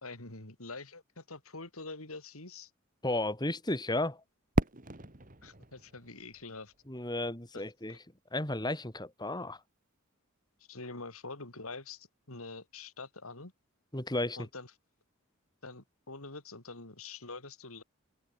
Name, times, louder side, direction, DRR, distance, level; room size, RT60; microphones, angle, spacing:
voice 1, 0.0-2.7 5.4-6.7 7.5-7.6 7.9-8.0 10.7-13.5 14.4-14.7 15.6-17.8, left 3 dB, 85° left, 4.2 m, -45 dB
voice 2, 3.0-4.2 6.9-8.0 8.3-9.6 13.9-14.4, left 2 dB, 20° left, 3.0 m, -33 dB
Fireworks, 4.6-7.4, right 1 dB, 40° right, 2.5 m, -35 dB
open air
head